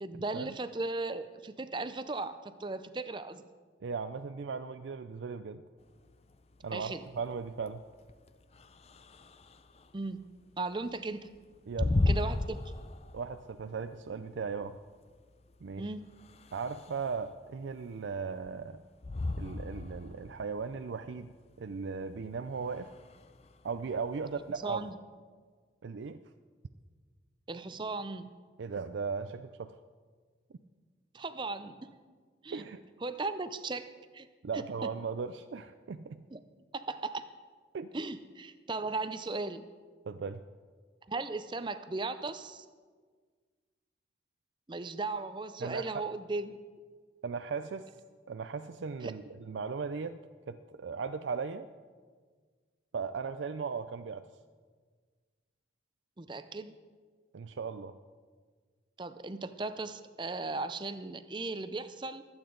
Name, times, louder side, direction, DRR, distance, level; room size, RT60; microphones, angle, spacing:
voice 1, 0.0-3.4 6.7-7.0 9.9-10.2 10.6-11.3 12.1-12.6 15.8-16.0 24.6-25.0 27.5-28.3 31.1-31.9 32.4-32.7 33.0-34.3 34.5-34.9 36.3-36.4 36.7-37.2 37.9-39.6 41.1-42.7 44.7-46.6 49.0-49.1 56.2-56.7 59.0-62.2, right 3 dB, 25° right, 11 dB, 0.5 m, -37 dB
voice 2, 3.8-5.6 6.6-7.8 11.7-12.0 13.1-14.8 15.6-15.9 16.5-18.8 19.4-22.9 23.6-24.8 25.8-26.2 28.6-29.7 32.5-32.8 34.4-36.2 37.7-37.9 40.1-40.4 45.6-46.0 47.2-47.9 48.3-50.2 50.5-51.7 52.9-54.2 57.3-57.9, right 5 dB, 90° right, 9 dB, 0.4 m, -37 dB
sound 1, 5.8-24.9, left 2 dB, 35° left, 0.5 m, -37 dB
23.5 x 8.9 x 3.9 m, 1.6 s
head